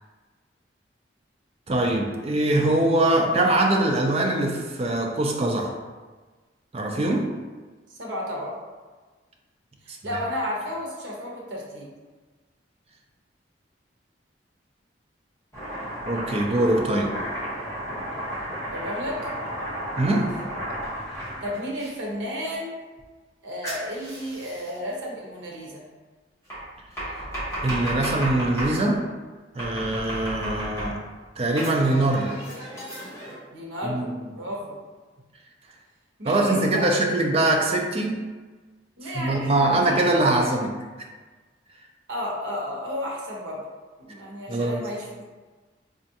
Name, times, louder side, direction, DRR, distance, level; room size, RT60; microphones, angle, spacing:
voice 1, 1.7-5.7 6.7-7.3 9.9-10.0 16.1-17.2 20.0-20.3 27.6-29.0 29.5-31.0 31.4-32.3 33.8-34.0 36.2-38.2 39.1-40.7 44.5-44.8, right 1 dB, 30° right, 1 dB, 0.4 m, -22 dB
voice 2, 7.9-8.6 9.8-11.9 18.7-19.3 21.4-22.8 23.4-25.9 33.5-34.8 36.2-36.9 39.0-40.1 40.3-40.6 42.1-43.6 44.1-45.1, equal, 80° right, -3 dB, 0.9 m, -33 dB
Domestic sounds home sounds, 15.5-21.9 23.6-24.8 26.5-28.8 29.6-31.1 31.6-33.3, right 1 dB, 15° left, 1.1 m, -33 dB
4.3 x 2.4 x 2.7 m, 1.3 s
head